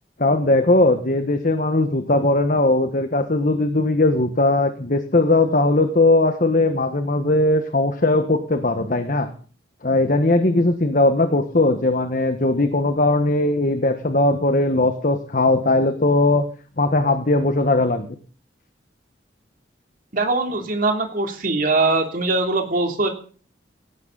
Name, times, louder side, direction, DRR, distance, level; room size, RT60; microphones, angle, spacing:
voice 1, 0.2-9.3 9.8-16.5 16.8-18.1, left 2 dB, 45° left, 8 dB, 1.4 m, -19 dB
voice 2, 20.1-23.1, right 3 dB, 50° right, 4 dB, 3.1 m, -21 dB
18.5 x 16.5 x 4.1 m, 0.41 s
head